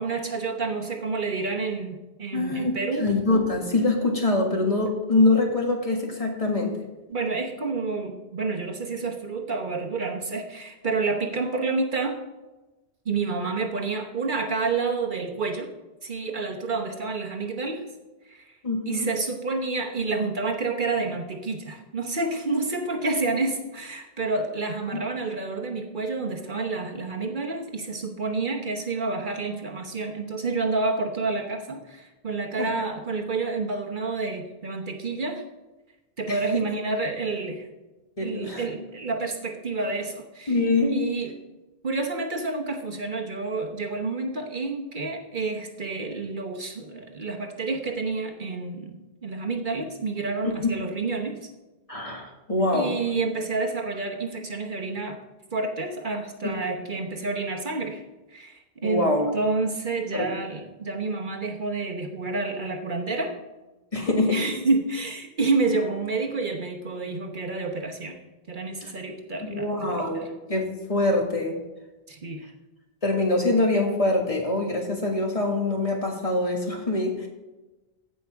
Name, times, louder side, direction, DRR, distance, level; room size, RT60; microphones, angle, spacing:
voice 1, 0.0-3.1 7.1-12.2 13.0-15.7 16.0-17.8 18.2-18.5 18.9-35.4 36.2-37.7 38.2-40.6 40.9-41.3 41.8-51.5 52.7-55.2 55.5-58.0 58.3-59.1 59.3-63.3 64.3-68.2 68.5-70.3 72.1-72.5, right 3 dB, 50° right, 2 dB, 1.2 m, -29 dB
voice 2, 2.3-2.7 3.0-6.8 18.6-19.1 24.9-25.0 32.6-32.7 36.3-36.6 38.2-38.6 40.5-41.1 50.4-50.7 51.9-52.9 56.7-56.8 58.8-59.3 60.1-60.3 63.9-64.4 68.8-68.9 69.4-71.6 73.0-77.3, left 2 dB, 35° left, 0 dB, 1.9 m, -24 dB
15.5 x 5.5 x 3.5 m, 1.1 s
omnidirectional pair, 1.0 m